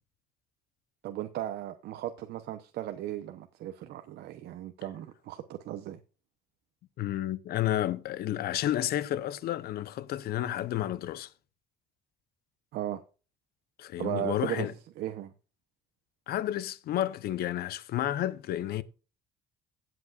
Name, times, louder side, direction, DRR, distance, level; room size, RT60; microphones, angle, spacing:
voice 1, 1.0-6.0 12.7-13.0 14.0-14.7 15.0-15.3, right 13 dB, 70° right, 0.9 m, -36 dB
voice 2, 7.0-11.3 13.8-14.7 16.3-18.8, left 12 dB, 65° left, 0.8 m, -31 dB
17.0 x 7.9 x 2.4 m
cardioid pair, 110°, 17 cm